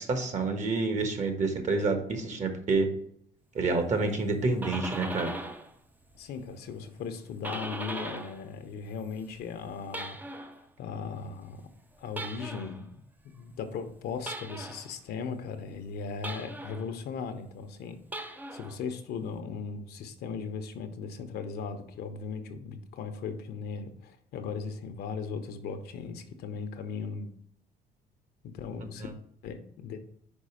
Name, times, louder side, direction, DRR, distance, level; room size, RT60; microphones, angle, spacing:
voice 1, 0.0-2.9 3.5-5.3 28.8-29.1, right 3 dB, 45° right, 6 dB, 1.4 m, -28 dB
sound 1, 4.3-5.7 6.0-8.4 8.8-10.6 12.1-12.8 14.2-14.9 16.2-16.9 18.0-18.8, right 1 dB, 10° right, 0.5 m, -39 dB
voice 2, 6.1-10.2 10.8-11.7 12.0-13.0 13.3-18.0 18.5-27.3 28.4-29.1 29.4-30.0, left 5 dB, 70° left, 7 dB, 0.9 m, -38 dB
5.4 x 4.9 x 4.9 m, 0.65 s
cardioid pair, 110°, 17 cm